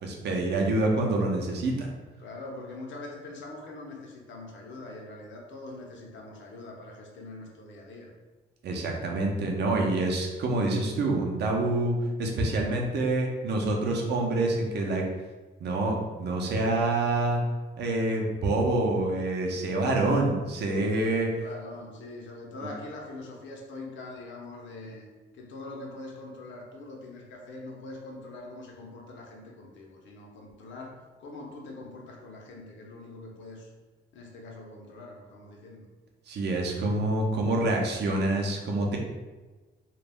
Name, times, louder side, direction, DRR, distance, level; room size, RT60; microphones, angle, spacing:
voice 1, 0.0-1.9 8.6-15.0 15.6-17.4 17.8-21.3 22.6-22.7 36.3-39.0, right 2 dB, 60° right, 0 dB, 0.6 m, -27 dB
voice 2, 2.2-8.1 21.3-25.1 25.3-33.7 34.1-35.8, left 2 dB, 70° left, -1 dB, 0.7 m, -43 dB
2.3 x 2.0 x 3.4 m, 1.2 s
cardioid pair, 90°, 20 cm